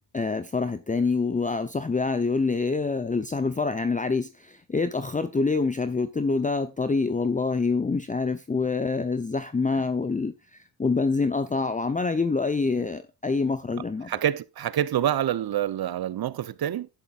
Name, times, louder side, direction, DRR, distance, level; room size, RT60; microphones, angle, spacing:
voice 1, 0.1-14.1, left 4 dB, 15° left, 0.8 m, -26 dB
voice 2, 14.1-16.9, right 11 dB, 50° right, 0.9 m, -27 dB
12.0 x 10.5 x 2.5 m
supercardioid pair, 70°, 46 cm